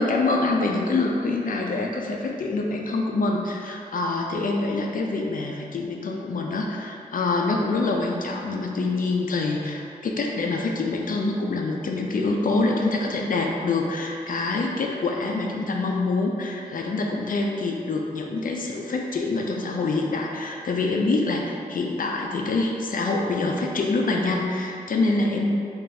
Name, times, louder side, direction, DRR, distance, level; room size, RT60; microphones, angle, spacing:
voice 1, 0.0-25.5, left 3 dB, 65° left, 0 dB, 0.4 m, -25 dB
3.3 x 2.4 x 4.1 m, 2.4 s
wide cardioid pair, 105°, 15 cm